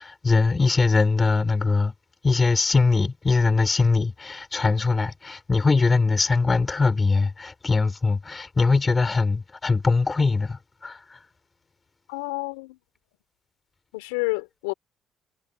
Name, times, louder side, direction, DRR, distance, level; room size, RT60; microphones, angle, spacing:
voice 1, 0.0-1.9 2.2-11.2, left 4 dB, 30° left, 7.1 m, -22 dB
voice 2, 12.1-12.8 13.9-14.7, left 29 dB, 90° left, 4.2 m, -29 dB
hypercardioid pair, 60°, 0 cm